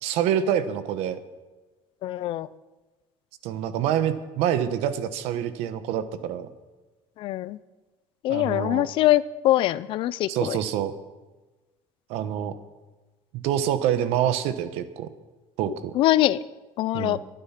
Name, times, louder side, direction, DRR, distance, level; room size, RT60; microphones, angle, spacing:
voice 1, 0.0-1.2 3.4-6.5 8.3-8.9 10.3-10.9 12.1-12.5 13.3-15.1 15.6-15.9 16.9-17.2, right 10 dB, 75° right, 12 dB, 1.2 m, -26 dB
voice 2, 2.0-2.5 7.2-7.6 8.2-10.6 15.9-16.4 16.8-17.2, left 15 dB, 55° left, 18 dB, 0.5 m, -23 dB
24.0 x 9.5 x 5.9 m, 1.2 s
cardioid pair, 160°, 10 cm